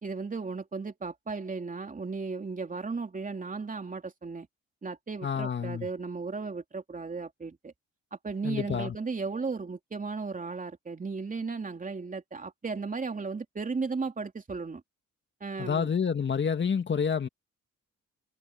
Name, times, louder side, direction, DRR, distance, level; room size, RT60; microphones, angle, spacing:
voice 1, 0.0-4.5 4.8-7.7 8.1-14.8 15.4-15.9, right 4 dB, 25° right, 3.1 m, -35 dB
voice 2, 5.2-5.9 8.4-9.0 15.6-17.3, left 6 dB, 40° left, 2.1 m, -28 dB
cardioid pair, 90°, 30 cm